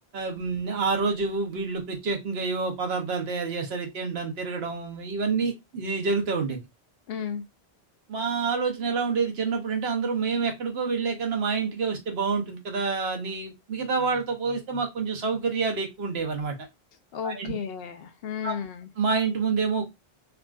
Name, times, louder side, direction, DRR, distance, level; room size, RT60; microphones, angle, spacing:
voice 1, 0.1-6.6 8.1-16.5 17.2-17.5 18.4-18.6 19.0-19.8, right 4 dB, 80° right, 1.1 m, -28 dB
voice 2, 7.1-7.4 17.1-18.9, left 7 dB, 75° left, 0.8 m, -33 dB
3.6 x 2.4 x 2.2 m
omnidirectional pair, 1.0 m